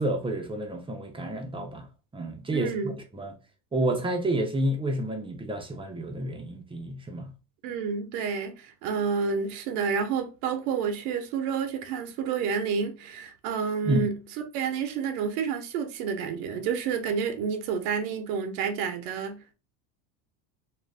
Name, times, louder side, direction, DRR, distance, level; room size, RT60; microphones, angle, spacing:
voice 1, 0.0-1.9 2.1-3.3 3.7-7.3 13.8-14.1, right 1 dB, 10° right, 0.5 m, -30 dB
voice 2, 2.5-2.9 7.6-14.2 14.5-19.5, right 6 dB, 75° right, 0.8 m, -29 dB
2.5 x 2.2 x 3.2 m
supercardioid pair, 110°, 45 cm